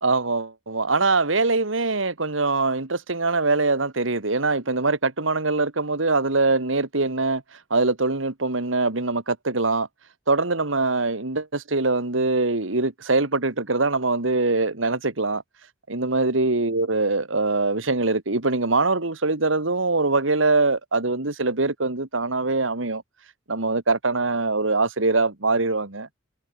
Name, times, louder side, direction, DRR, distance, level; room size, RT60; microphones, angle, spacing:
voice 1, 0.0-9.9 10.3-15.4 15.9-23.0 23.5-26.1, right 3 dB, 90° right, 2.2 m, -23 dB
head